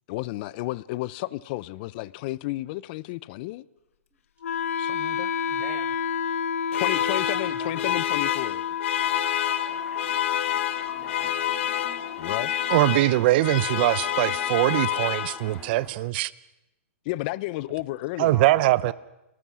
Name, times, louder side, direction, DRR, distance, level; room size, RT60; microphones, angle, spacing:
voice 1, 0.1-3.6 4.8-5.3 6.8-8.7 12.2-12.5 17.0-18.4, left 19 dB, 40° left, 0.8 m, -32 dB
Wind instrument woodwind instrument, 4.4-14.4, left 8 dB, 75° left, 1.4 m, -31 dB
voice 2, 5.5-6.0 7.2-8.1 11.0-11.3 18.2-18.9, right 7 dB, 15° right, 1.8 m, -43 dB
sound 1, 6.7-15.7, left 11 dB, 60° left, 1.2 m, -28 dB
Toilet flush, 9.0-15.9, left 1 dB, 5° left, 2.1 m, -47 dB
voice 3, 12.7-16.3 18.2-18.9, right 17 dB, 45° right, 0.8 m, -22 dB
29.0 x 19.0 x 6.4 m
hypercardioid pair, 140°, 7 cm